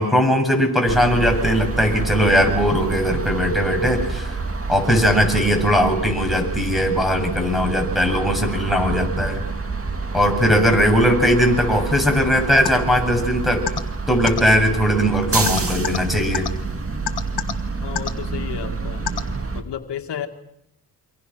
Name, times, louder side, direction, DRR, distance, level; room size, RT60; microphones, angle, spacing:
voice 1, 0.0-4.4 4.7-9.4 10.1-13.7 14.1-16.5, equal, ahead, 3 dB, 7.7 m, -19 dB
sound 1, 0.9-19.6, right 4 dB, 35° right, 2.4 m, -28 dB
sound 2, 12.6-12.7 13.7-13.8 14.3-14.4 15.5-16.0 16.3-16.5 17.1-17.5 18.0-18.1 19.1-19.2, left 8 dB, 70° left, 2.0 m, -24 dB
voice 2, 17.8-19.0 19.5-20.3, left 9 dB, 90° left, 6 dB, 2.0 m, -32 dB
28.0 x 25.0 x 6.2 m, 0.77 s
cardioid pair, 85°, 40 cm